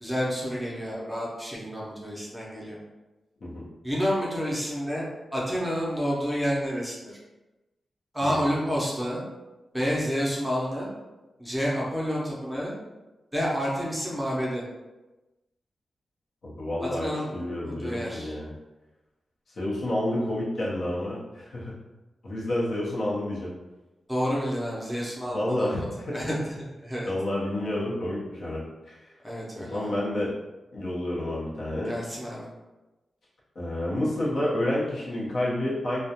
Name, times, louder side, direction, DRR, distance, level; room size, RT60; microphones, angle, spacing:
voice 1, 0.0-2.8 3.8-5.1 5.3-7.2 8.1-9.2 9.7-10.9 11.4-12.7 13.3-14.6 16.8-18.3 24.1-25.9 26.1-26.5 26.8-27.1 29.2-29.9 31.9-32.5, equal, 5° right, -5 dB, 0.6 m, -29 dB
voice 2, 16.4-18.5 19.5-21.7 22.2-23.5 25.3-26.2 27.0-29.1 29.6-30.3 30.7-32.0 33.5-36.0, left 1 dB, 75° left, -6 dB, 0.7 m, -29 dB
2.4 x 2.1 x 2.8 m, 1.1 s
wide cardioid pair, 120°, 0 cm